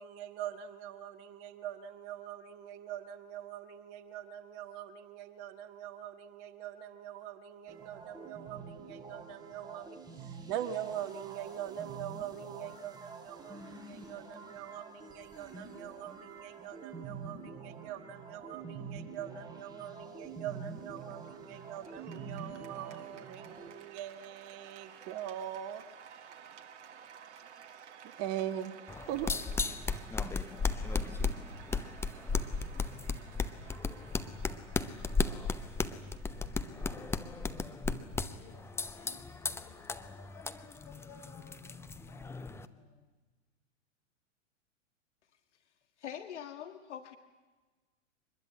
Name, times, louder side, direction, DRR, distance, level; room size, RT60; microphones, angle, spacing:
voice 1, 0.0-25.9 27.8-28.8 29.1-29.4, right 10 dB, 40° right, 9 dB, 1.7 m, -42 dB
sound 1, 7.7-23.7, right 4 dB, 10° right, 4.4 m, -47 dB
Cheering / Applause, 20.5-39.7, right 8 dB, 65° right, 2.0 m, -55 dB
sound 2, 28.9-42.7, left 4 dB, 5° left, 0.8 m, -36 dB
voice 2, 38.2-43.1, left 5 dB, 35° left, 4 dB, 6.0 m, -58 dB
voice 3, 46.0-47.2, left 9 dB, 70° left, 7 dB, 2.1 m, -43 dB
24.0 x 21.0 x 8.7 m, 1.3 s
hypercardioid pair, 110°, 37 cm